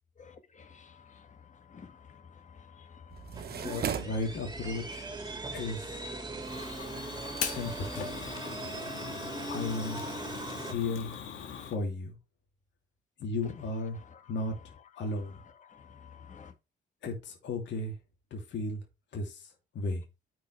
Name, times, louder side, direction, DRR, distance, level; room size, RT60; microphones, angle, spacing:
voice 1, 0.2-3.8 13.4-16.5, left 6 dB, 40° left, 1.8 m, -53 dB
sound 1, 3.1-8.4, right 8 dB, 50° right, 0.9 m, -41 dB
sound 2, 3.3-10.7, right 2 dB, 20° right, 2.4 m, -40 dB
voice 2, 3.6-5.1 5.5-6.0 7.5-8.1 9.5-10.0 10.6-11.1 11.6-12.1 13.2-14.0 14.3-14.5 15.0-15.4 17.0-18.0 18.3-18.8 19.1-20.0, left 3 dB, 65° left, 2.7 m, -34 dB
Fire, 6.4-11.8, left 8 dB, 85° left, 1.7 m, -40 dB
8.9 x 5.5 x 3.2 m
cardioid pair, 90°, 20 cm